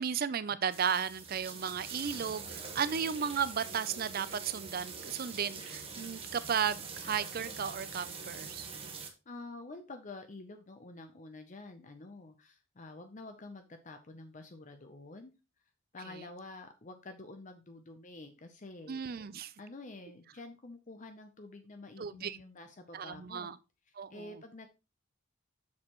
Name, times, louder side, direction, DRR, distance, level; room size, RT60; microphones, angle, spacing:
voice 1, 0.0-8.7 16.2-16.3 18.9-19.5 22.0-22.4 22.9-23.6 24.0-24.4, right 7 dB, 45° right, 0.4 m, -34 dB
sound 1, 0.7-9.1, right 5 dB, 25° right, 1.1 m, -44 dB
voice 2, 9.3-15.3 15.9-19.0 19.3-23.5 23.9-24.7, left 2 dB, 35° left, 0.6 m, -48 dB
7.3 x 6.5 x 3.0 m
head